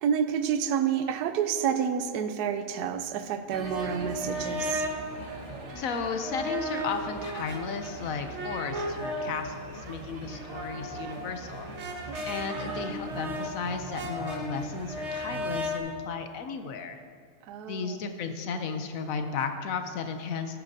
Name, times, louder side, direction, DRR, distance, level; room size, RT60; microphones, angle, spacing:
voice 1, 0.0-4.9 12.1-12.5 17.4-17.9, right 8 dB, 85° right, 10 dB, 1.1 m, -29 dB
sound 1, 3.5-15.8, equal, 50° right, 1.3 m, -35 dB
voice 2, 5.8-11.7 12.2-17.0 17.7-20.6, left 5 dB, 65° left, 7 dB, 1.0 m, -34 dB
15.5 x 8.7 x 2.7 m, 2.1 s
omnidirectional pair, 1.7 m